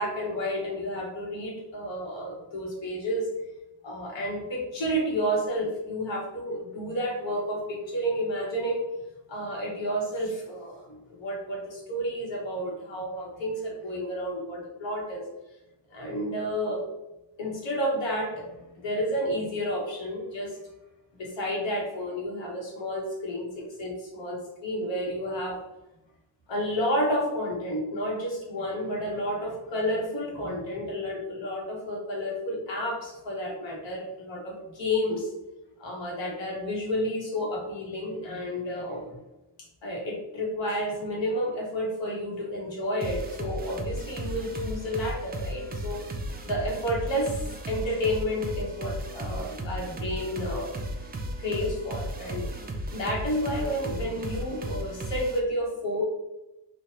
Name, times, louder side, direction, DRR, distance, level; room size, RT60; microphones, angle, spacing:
voice 1, 0.0-3.3 3.8-8.9 9.3-15.2 15.9-16.8 17.4-20.6 21.1-25.6 26.5-35.3 35.8-39.2 39.8-46.0 46.4-50.8 51.4-52.5 52.9-56.0, equal, 70° left, -2 dB, 1.2 m, -31 dB
sound 1, 43.0-55.4, right 1 dB, 25° right, 0.3 m, -35 dB
3.2 x 2.4 x 2.9 m, 0.96 s
cardioid pair, 110°, 46 cm